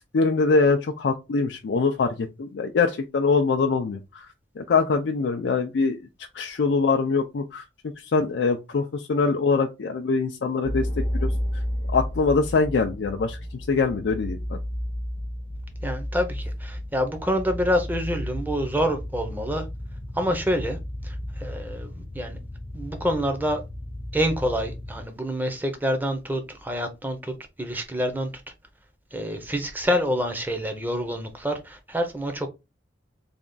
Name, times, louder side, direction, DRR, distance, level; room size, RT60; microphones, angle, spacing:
voice 1, 0.1-4.3 4.6-6.0 6.3-7.6 8.0-11.3 11.9-14.6, left 4 dB, 70° left, 0.4 m, -23 dB
sound 1, 10.6-25.1, equal, 30° left, 0.6 m, -33 dB
voice 2, 15.8-19.7 20.1-20.8 21.0-22.4 22.7-23.6 24.1-28.3 29.1-32.5, equal, 10° right, 0.6 m, -27 dB
3.4 x 2.3 x 3.8 m
head